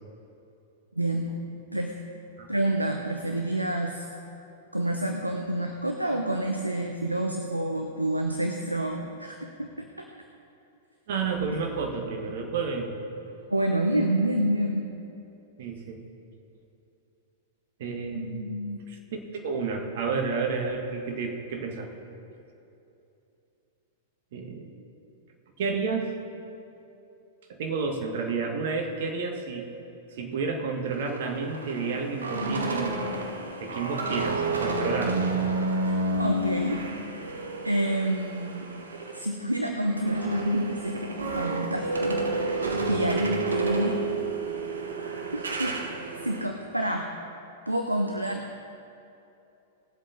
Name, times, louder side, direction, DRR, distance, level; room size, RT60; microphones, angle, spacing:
voice 1, 1.0-1.3 1.7-2.0 2.5-4.0 4.7-10.1 13.5-15.0 18.1-18.8 35.8-36.9 37.2-37.4 37.6-38.7 39.1-41.0 41.3-44.0 45.3-45.8 46.2-47.1 47.7-48.6, right 1 dB, 90° right, 3 dB, 0.7 m, -28 dB
voice 2, 11.1-13.0 15.6-16.0 17.8-18.4 18.9-21.9 24.3-24.7 25.6-26.1 27.5-29.7 30.1-33.1 33.6-35.3, right 4 dB, 55° right, 3 dB, 1.7 m, -31 dB
sound 1, 30.9-39.3 39.6-46.4, right 2 dB, 75° right, 1.2 m, -30 dB
19.5 x 7.7 x 4.1 m, 2.8 s
figure-of-eight pair, 100°, 0 cm